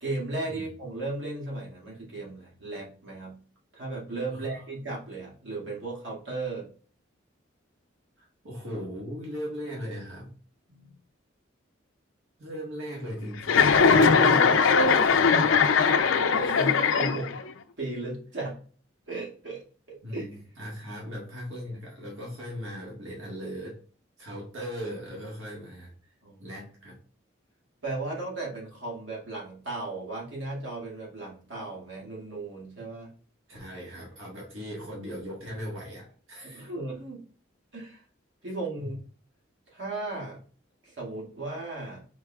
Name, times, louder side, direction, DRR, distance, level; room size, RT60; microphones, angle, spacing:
voice 1, 0.0-3.4 3.7-6.7 10.7-11.0 16.3-17.3 17.8-18.6 19.1-20.3 26.2-26.5 27.8-33.1 36.4-37.2 37.7-38.0 38.4-38.9 39.7-40.4 40.8-42.1, right 2 dB, 70° right, -4 dB, 2.1 m, -36 dB
voice 2, 8.2-10.3 12.4-15.5 20.0-23.8 24.2-25.9 26.4-27.0 33.5-36.7 38.8-38.9, equal, 90° right, -3 dB, 1.6 m, -38 dB
Chuckle chortle, 13.4-17.5, left 5 dB, 85° left, 0.5 m, -20 dB
4.6 x 4.5 x 2.3 m, 0.41 s
head